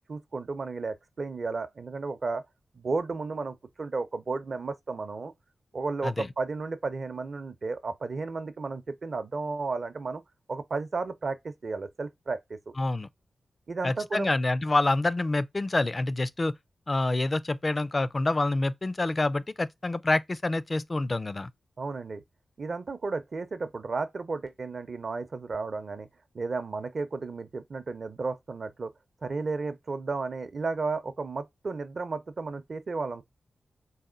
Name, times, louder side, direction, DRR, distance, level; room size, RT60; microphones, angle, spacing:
voice 1, 0.1-2.4 2.7-5.3 5.7-10.2 10.5-12.7 13.7-14.3 21.8-22.2 22.6-26.1 26.3-28.9 29.2-33.2, right 4 dB, 60° right, 0.6 m, -33 dB
voice 2, 12.8-13.1 13.8-16.6 16.9-21.5, left 2 dB, 40° left, 0.3 m, -27 dB
4.1 x 2.2 x 3.7 m
cardioid pair, 45°, 0 cm